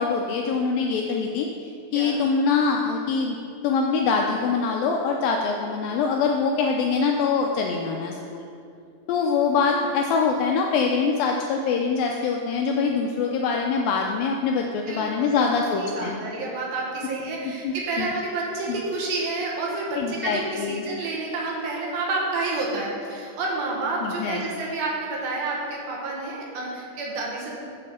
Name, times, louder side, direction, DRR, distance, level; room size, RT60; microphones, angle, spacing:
voice 1, 0.0-1.5 1.9-3.4 3.6-8.5 9.1-16.2 17.6-18.1 18.7-18.8 20.0-20.9 24.0-24.6, left 5 dB, 85° left, 1 dB, 2.1 m, -24 dB
voice 2, 14.9-15.5 15.8-27.7, right 3 dB, 70° right, -3 dB, 2.9 m, -29 dB
7.4 x 6.0 x 7.6 m, 2.4 s
omnidirectional pair, 4.6 m